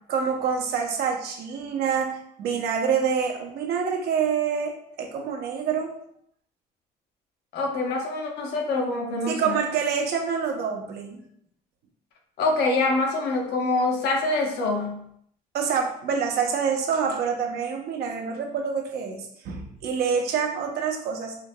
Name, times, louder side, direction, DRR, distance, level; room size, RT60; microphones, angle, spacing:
voice 1, 0.1-6.0 9.3-11.2 15.5-21.4, right 6 dB, 70° right, 2 dB, 0.7 m, -26 dB
voice 2, 7.5-9.6 12.4-15.0, left 2 dB, 75° left, 0 dB, 0.9 m, -25 dB
5.0 x 2.7 x 2.2 m, 0.70 s
cardioid pair, 110°, 17 cm